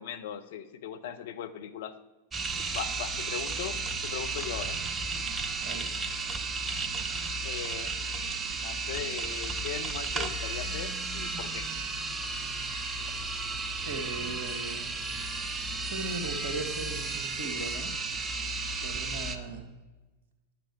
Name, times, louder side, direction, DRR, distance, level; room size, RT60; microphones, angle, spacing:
voice 1, 0.0-1.9 2.7-3.8 4.0-4.8 7.4-8.1 8.5-11.7, left 9 dB, 55° left, 10 dB, 0.6 m, -39 dB
sound 1, 2.3-19.4, right 3 dB, 20° right, 0.7 m, -33 dB
voice 2, 5.6-6.0 13.8-15.0 15.8-18.0 18.8-19.7, right 3 dB, 55° right, 5 dB, 1.4 m, -38 dB
10.5 x 7.6 x 4.8 m, 1.2 s
figure-of-eight pair, 90°, 0 cm